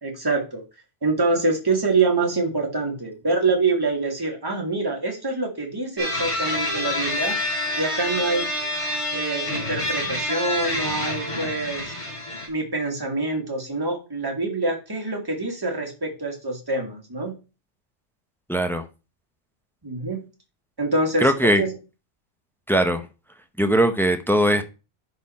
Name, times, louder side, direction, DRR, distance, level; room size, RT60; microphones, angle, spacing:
voice 1, 0.0-0.6 1.0-7.4 7.8-8.5 9.1-11.9 12.5-17.3 19.8-20.2 20.8-21.7, right 3 dB, 20° right, 1.9 m, -25 dB
sound 1, 6.0-12.5, left 1 dB, 25° left, 2.5 m, -27 dB
voice 2, 18.5-18.8 21.2-21.6 22.7-23.0 23.6-24.6, right 1 dB, 5° left, 0.4 m, -20 dB
10.5 x 4.1 x 4.2 m
omnidirectional pair, 1.2 m